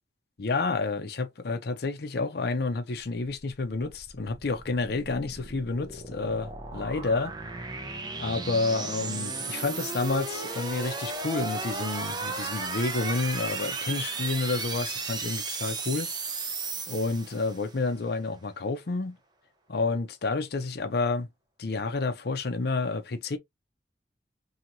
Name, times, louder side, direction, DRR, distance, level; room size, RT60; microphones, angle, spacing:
voice 1, 0.4-7.3 8.2-16.1 16.9-19.1 19.7-21.3 21.6-23.4, left 3 dB, 60° left, 0.6 m, -30 dB
sound 1, 3.4-17.8, right 4 dB, 25° right, 0.6 m, -35 dB
2.9 x 2.8 x 2.6 m
head